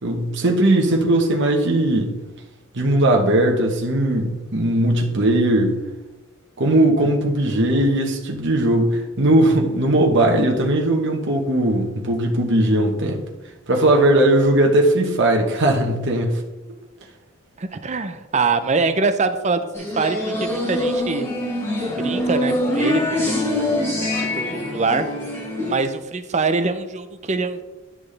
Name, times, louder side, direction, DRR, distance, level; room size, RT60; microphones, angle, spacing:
voice 1, 0.0-2.1 2.7-5.8 6.6-13.2 13.7-16.4, right 1 dB, 60° right, 1.2 m, -18 dB
voice 2, 17.6-21.3 22.0-24.4 24.7-25.1 25.7-27.6, right 4 dB, 35° right, 0.6 m, -24 dB
sound 1, 19.7-25.7, left 1 dB, 15° left, 2.9 m, -24 dB
11.0 x 6.2 x 3.3 m
head